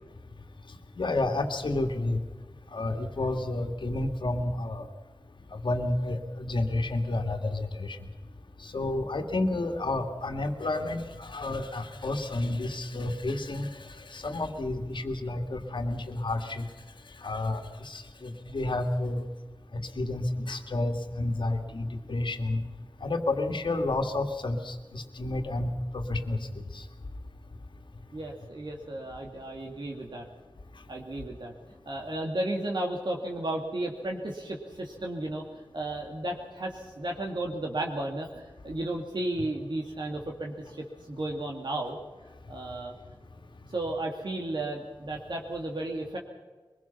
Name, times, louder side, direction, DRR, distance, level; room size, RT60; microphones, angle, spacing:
voice 1, 1.0-2.2 2.7-4.9 5.5-8.0 8.6-13.7 14.1-16.7 17.2-19.3 20.0-22.6 23.0-26.4 26.7-26.8, left 2 dB, 80° left, 5 dB, 2.1 m, -30 dB
voice 2, 28.1-30.2 30.9-31.5 31.9-42.0 42.5-42.9 43.7-46.2, right 1 dB, 70° right, 0 dB, 2.5 m, -34 dB
23.0 x 21.5 x 5.8 m, 1.3 s
wide cardioid pair, 70°, 8 cm